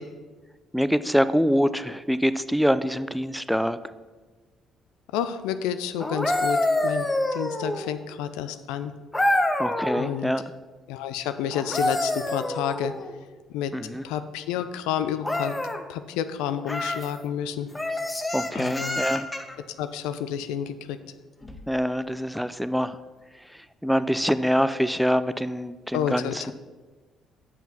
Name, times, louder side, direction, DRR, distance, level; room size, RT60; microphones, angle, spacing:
voice 1, 0.7-3.8 9.6-10.4 13.7-14.0 18.3-19.3 21.7-23.0 23.8-26.5, equal, ahead, 13 dB, 0.4 m, -25 dB
voice 2, 5.1-8.9 10.0-10.3 10.9-12.9 13.5-13.7 14.0-15.5 15.9-17.7 18.5-19.0 19.8-21.0 25.9-26.5, left 9 dB, 75° left, 11 dB, 0.4 m, -30 dB
sound 1, 6.0-8.0 9.1-10.1 11.5-13.1 15.2-15.8 16.6-17.1 17.7-19.6 21.4-21.6, left 1 dB, 15° left, 1.0 m, -27 dB
7.3 x 5.6 x 5.8 m, 1.3 s
hypercardioid pair, 50°, 0 cm